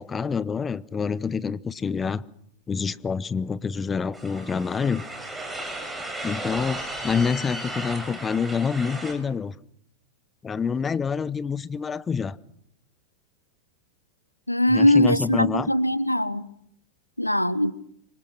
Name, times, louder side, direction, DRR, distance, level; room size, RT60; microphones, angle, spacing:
voice 1, 0.0-2.2 2.7-5.0 6.2-9.5 10.4-12.4 14.7-15.7, left 6 dB, 20° left, 0.9 m, -27 dB
sound 1, 4.1-9.1, right 1 dB, 10° right, 7.0 m, -35 dB
voice 2, 14.5-16.5 17.2-17.7, left 1 dB, 85° left, 0.9 m, -21 dB
28.5 x 25.5 x 6.0 m
figure-of-eight pair, 90°, 0 cm